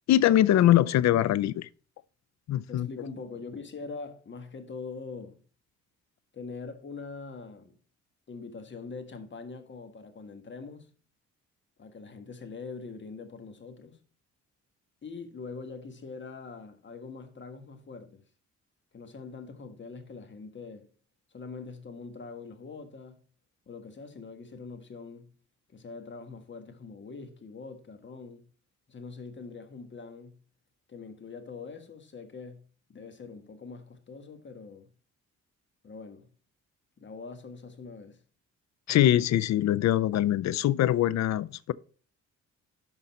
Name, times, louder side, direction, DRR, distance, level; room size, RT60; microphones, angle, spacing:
voice 1, 0.1-1.7 2.5-2.9 38.9-41.7, left 12 dB, 65° left, 0.5 m, -23 dB
voice 2, 0.6-1.0 2.7-5.4 6.3-7.7 8.3-10.9 11.8-14.0 15.0-18.2 18.9-20.9 21.3-23.2 23.7-25.3 25.7-28.5 28.9-30.4 30.9-32.6 32.9-34.9 35.8-36.3 37.0-38.2, left 4 dB, 40° left, 1.5 m, -43 dB
11.5 x 4.0 x 4.2 m
cardioid pair, 90°, 30 cm